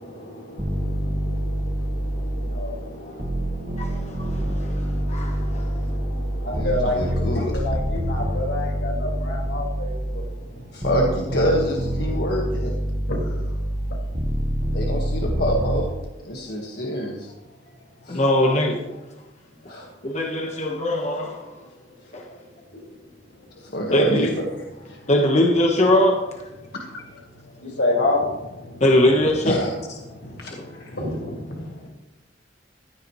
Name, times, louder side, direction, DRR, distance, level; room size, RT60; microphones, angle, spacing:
voice 1, 0.0-10.9 12.1-12.3 12.8-15.2 16.3-17.9 18.2-18.5 21.5-23.9 24.5-25.1 25.4-25.5 26.6-29.3 29.7-31.9, left 2 dB, 90° left, 4.8 m, -32 dB
sound 1, 0.6-2.7 3.2-10.3 10.8-15.8, equal, 35° right, 1.6 m, -26 dB
voice 2, 3.8-4.7 5.1-5.8 18.1-18.8 20.0-21.6 22.1-22.3 23.9-24.3 25.1-26.2 28.8-29.6 30.5-30.6, left 1 dB, 40° left, 1.3 m, -21 dB
voice 3, 6.5-7.6 10.7-12.7 14.7-15.9 16.2-17.3 18.0-18.2 19.7-19.9 23.6-24.4 26.7-26.9 29.4-29.7 30.4-31.0, equal, 60° left, 1.6 m, -26 dB
15.5 x 12.5 x 3.2 m
head